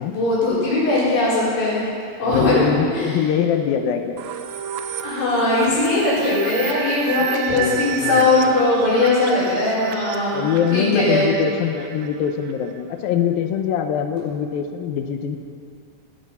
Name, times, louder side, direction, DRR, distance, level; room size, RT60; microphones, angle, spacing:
voice 1, 0.1-1.8 2.2-2.7 2.9-3.2 5.0-10.5 10.7-11.3, left 2 dB, 70° left, -9 dB, 6.8 m, -19 dB
voice 2, 2.2-4.2 7.5-8.3 10.3-15.4, left 8 dB, 85° left, 6 dB, 2.7 m, -23 dB
sound 1, 4.2-12.8, right 8 dB, 90° right, 2.7 m, -31 dB
17.5 x 13.0 x 5.7 m, 2.4 s
omnidirectional pair, 4.1 m